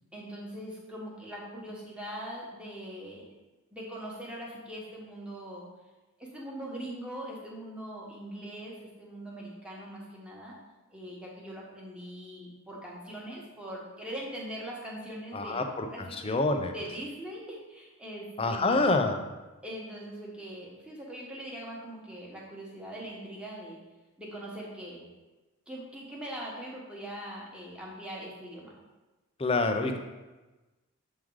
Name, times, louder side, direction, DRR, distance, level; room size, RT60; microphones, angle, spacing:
voice 1, 0.1-3.3 3.7-5.6 6.2-10.6 10.9-16.4 16.7-18.9 19.6-23.8 24.2-25.1 25.7-28.8, right 1 dB, 5° right, -4 dB, 1.3 m, -41 dB
voice 2, 15.3-15.9 16.2-16.7 18.4-19.2 29.4-30.0, left 2 dB, 25° left, 5 dB, 0.5 m, -26 dB
7.5 x 3.7 x 4.7 m, 1.2 s
head